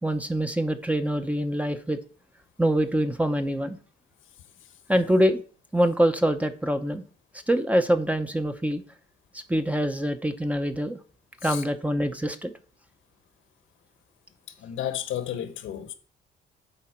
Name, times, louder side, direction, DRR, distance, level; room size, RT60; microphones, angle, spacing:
voice 1, 0.0-2.0 2.6-3.8 4.9-5.4 5.7-7.0 7.5-8.8 9.5-11.0 11.4-12.5, equal, 5° right, 0.8 m, -24 dB
voice 2, 14.6-15.9, left 10 dB, 85° left, 1.3 m, -32 dB
9.9 x 4.2 x 4.5 m
cardioid pair, 90°, 20 cm